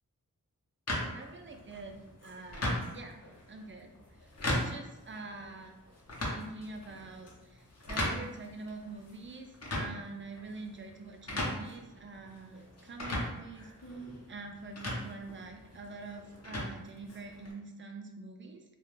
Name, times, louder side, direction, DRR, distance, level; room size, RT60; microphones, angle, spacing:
sound 1, 0.9-17.5, left 1 dB, 50° left, 0.7 m, -39 dB
voice 1, 1.1-3.2 3.5-3.9 4.4-5.7 6.3-18.6, right 3 dB, 35° right, 4 dB, 0.4 m, -46 dB
2.3 x 2.2 x 3.0 m, 0.99 s
wide cardioid pair, 60°, 34 cm